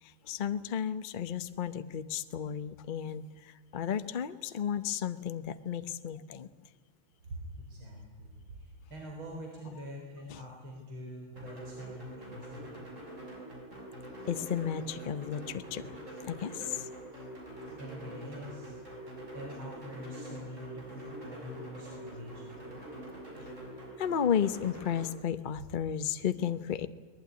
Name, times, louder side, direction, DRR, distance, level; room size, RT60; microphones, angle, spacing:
voice 1, 0.0-6.5 10.3-10.4 14.3-15.9 16.3-16.9 24.0-26.9, left 8 dB, 75° left, 11 dB, 0.4 m, -33 dB
voice 2, 7.2-12.7 17.8-18.8 19.3-22.6, equal, 80° right, 0 dB, 4.7 m, -45 dB
sound 1, 11.4-25.1, right 1 dB, 35° right, 6.6 m, -45 dB
23.0 x 19.5 x 9.5 m, 1.5 s
omnidirectional pair, 2.2 m